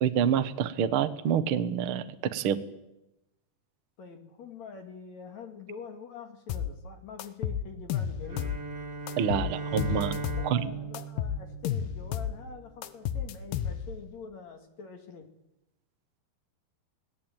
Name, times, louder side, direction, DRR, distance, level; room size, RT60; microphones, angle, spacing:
voice 1, 0.0-2.6 9.2-10.1 10.4-10.7, right 8 dB, 80° right, 10 dB, 1.1 m, -27 dB
voice 2, 4.0-8.5 10.2-15.3, left 5 dB, 50° left, 6 dB, 3.0 m, -45 dB
sound 1, 6.5-6.7 7.2-8.6 9.1-10.5 10.9-12.4 12.8-14.0, left 9 dB, 75° left, 2.9 m, -32 dB
Bowed string instrument, 8.2-12.5, right 4 dB, 40° right, 3.1 m, -38 dB
24.5 x 18.0 x 9.1 m, 0.92 s
omnidirectional pair, 4.4 m